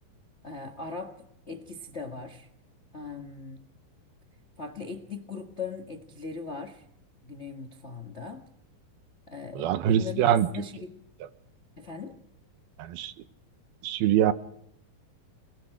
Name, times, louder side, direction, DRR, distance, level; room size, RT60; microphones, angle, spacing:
voice 1, 0.4-2.5 2.9-3.6 4.6-6.8 7.2-8.5 9.3-11.0 11.8-12.2, left 4 dB, 80° left, 6 dB, 0.6 m, -39 dB
voice 2, 9.6-10.5 12.8-13.1 13.8-14.3, right 10 dB, 80° right, 12 dB, 2.8 m, -23 dB
29.0 x 19.0 x 5.0 m, 0.74 s
omnidirectional pair, 4.3 m